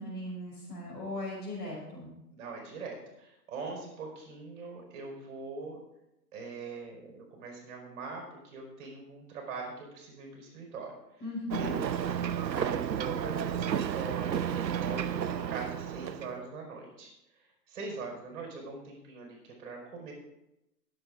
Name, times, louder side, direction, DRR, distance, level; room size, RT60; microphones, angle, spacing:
voice 1, 0.0-2.1 11.2-11.8, left 1 dB, 20° left, -5 dB, 5.8 m, -38 dB
voice 2, 2.4-5.8 6.3-11.2 11.6-11.9 12.5-17.1 17.7-20.1, right 4 dB, 45° right, 1 dB, 4.9 m, -42 dB
Ocean, 11.5-16.4, right 9 dB, 80° right, 0.8 m, -32 dB
22.5 x 8.0 x 3.7 m, 0.88 s
hypercardioid pair, 130°, 50 cm